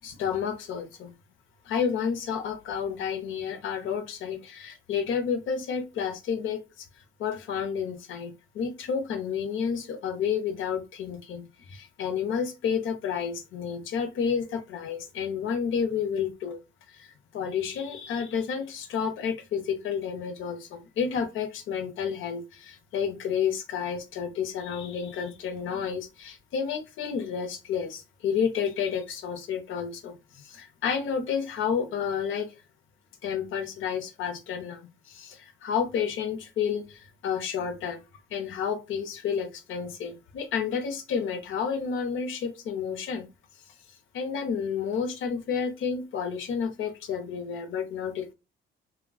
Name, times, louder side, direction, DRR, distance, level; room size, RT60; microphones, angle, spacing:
voice 1, 0.0-1.1 1.6-6.9 7.2-16.6 16.9-32.5 33.2-38.0 38.3-43.3 43.9-48.3, left 7 dB, 80° left, 0.7 m, -30 dB
3.5 x 2.2 x 2.3 m
cardioid pair, 90°, 20 cm